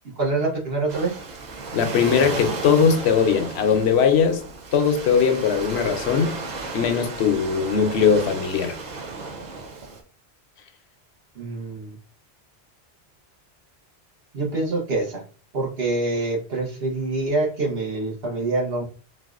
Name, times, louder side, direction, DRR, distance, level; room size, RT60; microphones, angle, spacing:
voice 1, 0.2-1.2 11.4-11.9 14.3-15.2 15.5-18.8, right 2 dB, 70° right, 1.1 m, -25 dB
Waves surf, 0.9-10.0, right 3 dB, 50° right, 0.6 m, -34 dB
voice 2, 1.7-4.4 4.7-6.4 6.7-8.8, left 6 dB, 85° left, 0.8 m, -20 dB
4.0 x 2.2 x 2.4 m
omnidirectional pair, 1.1 m